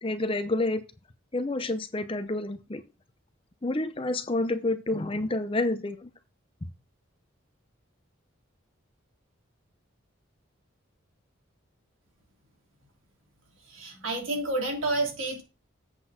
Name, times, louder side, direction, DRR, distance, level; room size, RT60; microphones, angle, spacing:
voice 1, 0.0-0.8 1.3-2.8 3.6-6.1, left 2 dB, 25° left, 11 dB, 0.6 m, -29 dB
voice 2, 13.7-15.4, right 2 dB, 75° right, 1 dB, 3.0 m, -29 dB
8.0 x 4.4 x 5.8 m, 0.29 s
head